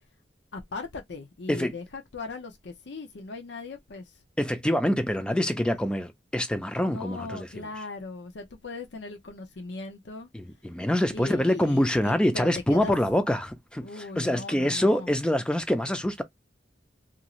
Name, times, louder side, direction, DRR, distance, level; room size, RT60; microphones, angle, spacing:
voice 1, 0.5-4.1 6.9-10.3 11.1-12.9 13.8-15.1, left 3 dB, 80° left, 0.6 m, -39 dB
voice 2, 4.4-7.5 10.3-16.2, left 1 dB, 5° left, 0.4 m, -25 dB
2.6 x 2.4 x 2.9 m
head